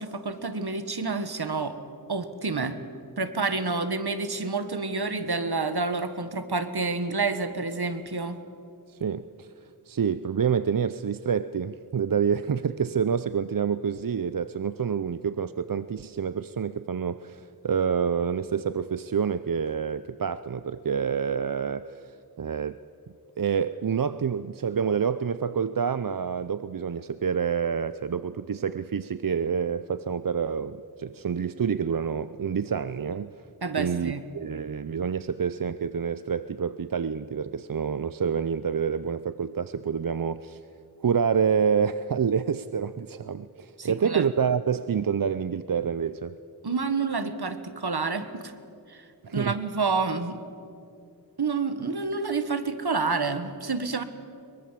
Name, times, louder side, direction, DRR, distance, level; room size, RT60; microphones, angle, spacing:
voice 1, 0.0-1.8 2.1-2.8 3.2-8.4 33.6-34.2 43.8-44.3 46.6-48.5 48.9-49.0 49.3-50.4 51.4-54.0, right 4 dB, 75° right, 10 dB, 1.5 m, -29 dB
voice 2, 8.9-9.5 9.9-22.8 23.4-33.5 33.8-40.6 41.0-46.4 49.2-49.6, right 7 dB, 60° right, 14 dB, 0.6 m, -28 dB
22.5 x 22.0 x 7.5 m, 2.5 s
wide cardioid pair, 50°, 39 cm